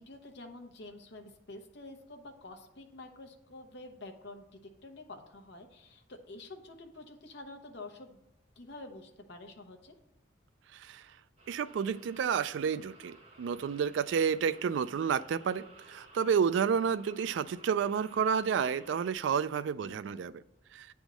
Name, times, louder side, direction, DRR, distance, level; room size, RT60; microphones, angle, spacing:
voice 1, 0.0-8.2 8.6-9.9 19.8-20.3, left 2 dB, 65° left, 5 dB, 0.9 m, -48 dB
voice 2, 10.7-11.0 11.5-20.3 20.7-20.9, right 7 dB, 75° right, 16 dB, 0.3 m, -30 dB
sound 1, 11.4-19.1, right 2 dB, 40° right, 2.0 m, -56 dB
9.0 x 3.5 x 6.1 m, 0.84 s
head